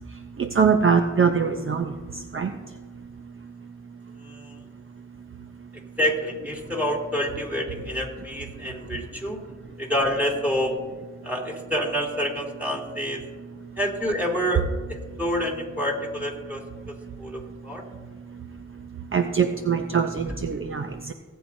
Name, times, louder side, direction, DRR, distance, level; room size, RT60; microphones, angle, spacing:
voice 1, 0.4-1.9 2.3-2.5 19.1-21.1, right 6 dB, 45° right, 6 dB, 0.7 m, -22 dB
voice 2, 4.2-4.6 5.7-9.4 9.8-10.8 11.2-13.2 13.8-16.6 17.2-17.8 20.3-20.4, equal, 5° right, -1 dB, 3.2 m, -28 dB
18.0 x 8.8 x 2.7 m, 1.5 s
cardioid pair, 65°, 30 cm